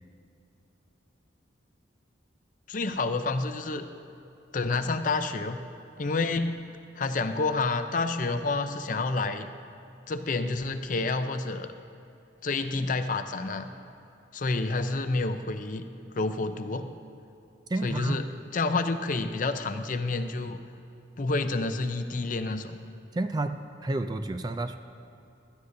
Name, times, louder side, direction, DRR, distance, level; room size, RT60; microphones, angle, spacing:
voice 1, 2.7-3.9 4.5-5.6 6.0-6.6 7.0-9.5 10.1-11.7 12.4-13.7 14.3-15.8 16.1-16.9 17.8-18.2 18.5-20.6 21.2-22.8, left 3 dB, 45° left, 9 dB, 0.5 m, -29 dB
voice 2, 17.7-18.3 23.1-24.8, right 2 dB, 20° right, 8 dB, 0.3 m, -30 dB
16.0 x 13.0 x 2.6 m, 2.8 s
head